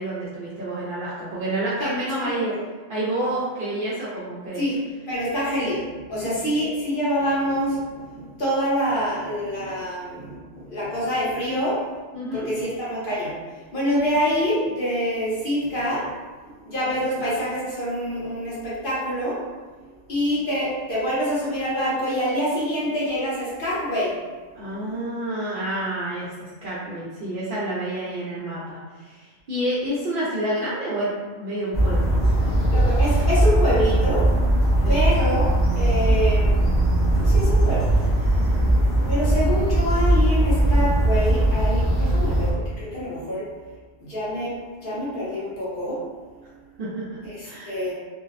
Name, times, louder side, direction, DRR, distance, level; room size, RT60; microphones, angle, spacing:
voice 1, 0.0-2.5 2.9-4.6 12.1-12.5 24.5-26.3 26.6-32.5 34.8-35.0 38.5-39.3 46.8-47.2 47.4-47.8, right 1 dB, 60° right, -8 dB, 0.6 m, -29 dB
voice 2, 1.8-2.6 4.6-4.8 5.1-11.8 12.3-13.3 13.7-16.0 16.7-19.4 20.1-24.1 32.7-34.3 34.9-35.5 35.8-36.7 37.2-37.9 39.1-43.5 44.0-44.5 44.8-46.0 47.2-47.9, equal, 50° left, -9 dB, 0.9 m, -26 dB
sound 1, 31.7-42.5, right 1 dB, 5° left, 0.6 m, -19 dB
2.6 x 2.0 x 2.4 m, 1.4 s
omnidirectional pair, 1.2 m